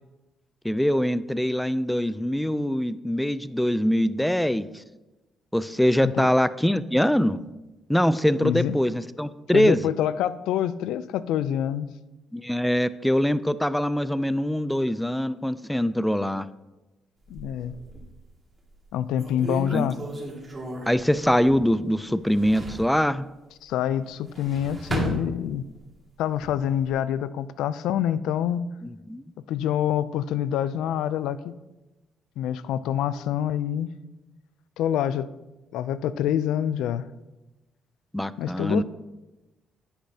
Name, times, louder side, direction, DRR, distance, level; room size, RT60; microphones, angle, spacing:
voice 1, 0.6-4.8 5.5-7.4 7.9-9.8 12.3-16.5 19.7-19.9 20.9-23.2 29.1-29.2 38.1-38.8, equal, 5° left, 16 dB, 0.4 m, -23 dB
voice 2, 8.4-8.8 9.5-11.9 17.3-17.7 18.9-20.0 23.6-25.7 26.2-28.7 29.5-31.5 32.4-33.9 34.8-35.3 35.7-37.1 38.4-38.8, left 10 dB, 90° left, 15 dB, 0.3 m, -26 dB
sound 1, 17.2-18.2 18.7-18.8 19.2-21.8 22.1-22.9 24.1-25.8 26.3-26.9, right 1 dB, 30° right, 2.1 m, -34 dB
10.0 x 8.2 x 2.8 m, 1.0 s
cardioid pair, 90°, 0 cm